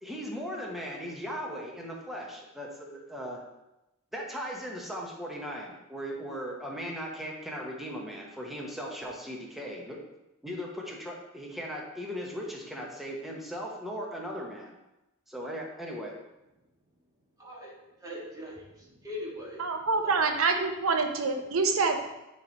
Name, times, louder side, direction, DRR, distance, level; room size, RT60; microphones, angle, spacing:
voice 1, 0.0-3.4 4.1-10.0 10.4-14.7 15.3-16.1, equal, ahead, -2 dB, 1.0 m, -38 dB
voice 2, 17.4-17.7 18.0-19.6 20.0-20.2, left 1 dB, 20° right, -4 dB, 1.6 m, -41 dB
voice 3, 19.6-22.0, right 4 dB, 70° right, 5 dB, 0.7 m, -26 dB
9.0 x 3.2 x 4.0 m, 0.95 s
head